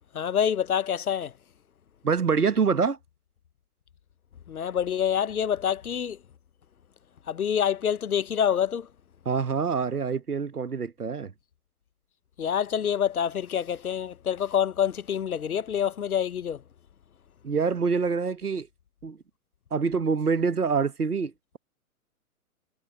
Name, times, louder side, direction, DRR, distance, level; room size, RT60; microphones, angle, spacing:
voice 1, 0.1-1.3 4.5-6.2 7.3-8.9 12.4-16.6, left 8 dB, 70° left, 0.9 m, -26 dB
voice 2, 2.0-3.0 9.2-11.3 17.4-18.7 19.0-19.2 19.7-21.6, right 5 dB, 85° right, 1.3 m, -26 dB
figure-of-eight pair, 115°, 45 cm